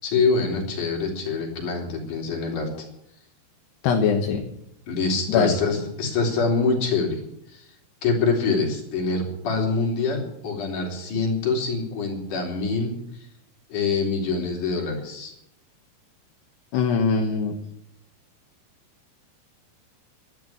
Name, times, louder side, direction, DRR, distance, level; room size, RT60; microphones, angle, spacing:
voice 1, 0.0-2.9 4.9-7.2 7.5-7.7 8.0-12.9 13.7-15.3, left 4 dB, 40° left, 0 dB, 4.7 m, -25 dB
voice 2, 3.8-4.4 5.3-5.6 16.7-17.6, left 6 dB, 70° left, 3 dB, 3.0 m, -21 dB
12.0 x 12.0 x 8.6 m, 0.78 s
omnidirectional pair, 5.7 m